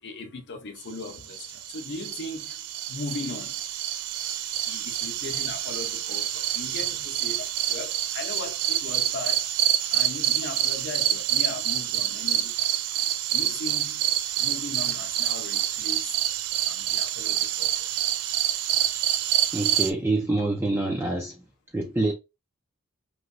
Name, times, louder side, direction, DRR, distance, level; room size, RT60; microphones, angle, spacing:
voice 1, 0.0-3.6 4.7-9.6 9.9-12.6 13.3-14.0 14.4-16.2 16.7-17.9, left 3 dB, 50° left, 0.7 m, -38 dB
sound 1, 1.0-19.9, right 11 dB, 80° right, 0.4 m, -27 dB
voice 2, 19.5-21.4 21.7-22.1, right 2 dB, 10° right, 0.4 m, -26 dB
3.0 x 2.8 x 2.5 m
head